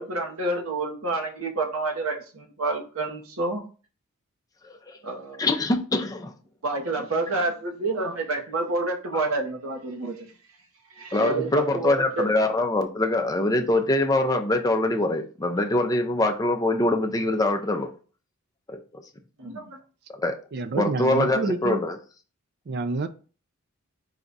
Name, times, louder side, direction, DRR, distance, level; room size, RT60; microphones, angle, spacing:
voice 1, 0.0-3.6 5.0-5.4 6.6-10.3 10.9-12.3 19.4-19.8, right 2 dB, 70° right, 1.0 m, -28 dB
voice 2, 4.6-5.0 5.4-6.3 11.1-17.9 18.7-19.0 20.1-20.4 20.8-22.0, left 2 dB, 15° left, 0.5 m, -24 dB
voice 3, 20.5-21.8 22.7-23.1, right 3 dB, 45° right, 0.4 m, -28 dB
4.9 x 2.3 x 3.9 m
head